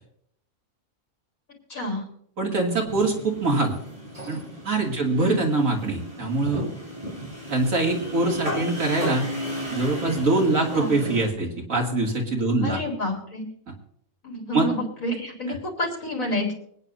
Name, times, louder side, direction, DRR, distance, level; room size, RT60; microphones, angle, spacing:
voice 1, 1.7-2.0 5.2-5.4 10.7-11.0 12.6-13.4 14.2-16.5, left 1 dB, 85° left, -1 dB, 4.4 m, -29 dB
voice 2, 2.4-3.7 4.3-6.6 7.5-9.3 9.7-12.8 14.5-14.7, right 2 dB, 85° right, -1 dB, 3.0 m, -23 dB
sound 1, 2.9-11.3, equal, 25° right, 7.2 m, -34 dB
25.0 x 9.8 x 2.7 m, 0.69 s
omnidirectional pair, 1.4 m